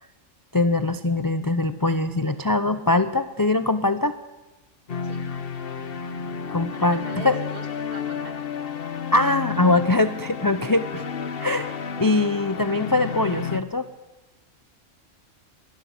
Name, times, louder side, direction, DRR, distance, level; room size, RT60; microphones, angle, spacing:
voice 1, 0.5-4.2 6.5-7.4 9.1-11.0 11.4-13.9, left 2 dB, 20° left, 11 dB, 0.6 m, -22 dB
sound 1, 4.9-13.6, left 6 dB, 50° left, 1.2 m, -31 dB
voice 2, 6.7-8.4, right 2 dB, 45° right, 6 dB, 2.9 m, -41 dB
23.5 x 20.0 x 7.9 m, 1.1 s
omnidirectional pair, 1.3 m